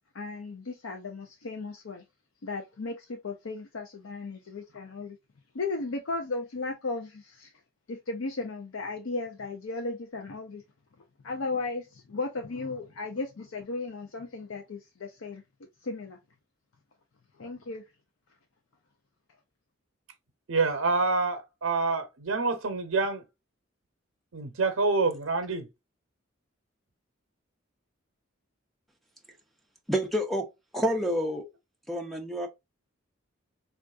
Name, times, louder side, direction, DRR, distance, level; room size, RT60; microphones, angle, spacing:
voice 1, 0.1-2.0 2.4-5.2 5.5-7.5 7.9-10.6 11.2-15.4 15.8-16.2 17.4-17.8, left 3 dB, 90° left, 0.6 m, -35 dB
voice 2, 20.5-23.2 24.3-25.7, right 3 dB, 90° right, 0.7 m, -27 dB
voice 3, 29.9-30.5 30.7-31.5 31.9-32.5, equal, ahead, 0.4 m, -28 dB
3.5 x 2.5 x 2.3 m
head